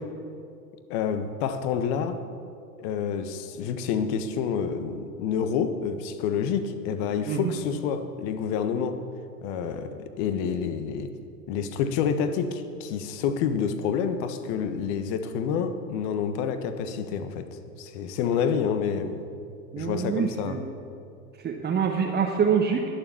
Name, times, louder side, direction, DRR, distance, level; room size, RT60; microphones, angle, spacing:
voice 1, 0.9-2.2 2.8-9.0 9.4-11.1 11.5-19.2 19.8-20.6, left 7 dB, 45° left, 10 dB, 1.3 m, -28 dB
voice 2, 19.7-20.6 21.4-22.9, right 6 dB, 20° right, 1 dB, 1.2 m, -25 dB
21.0 x 7.2 x 7.1 m, 2.5 s
figure-of-eight pair, 90°, 46 cm